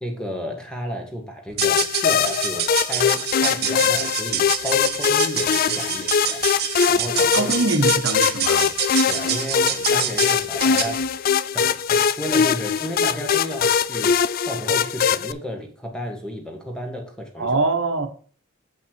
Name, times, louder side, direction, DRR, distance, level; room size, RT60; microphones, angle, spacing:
voice 1, 0.0-6.4 6.9-7.5 9.1-11.0 11.5-17.5, equal, 5° left, 1.5 m, -32 dB
sound 1, 1.5-11.0, right 10 dB, 50° right, 0.9 m, -27 dB
sound 2, 1.6-15.3, left 7 dB, 45° left, 0.3 m, -22 dB
voice 2, 7.3-8.7 17.4-18.1, right 3 dB, 75° right, 1.2 m, -23 dB
7.6 x 5.8 x 4.5 m
head